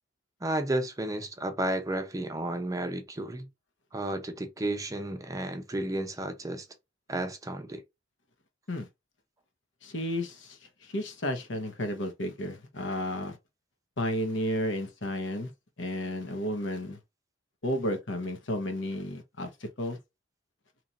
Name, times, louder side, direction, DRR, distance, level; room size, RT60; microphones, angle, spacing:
voice 1, 0.4-3.5 3.9-6.7 7.1-7.8, right 1 dB, 20° right, 0.6 m, -32 dB
voice 2, 9.8-13.4 14.0-15.5 15.8-17.0 17.6-20.0, left 1 dB, 70° left, 0.9 m, -32 dB
3.0 x 2.5 x 4.0 m
head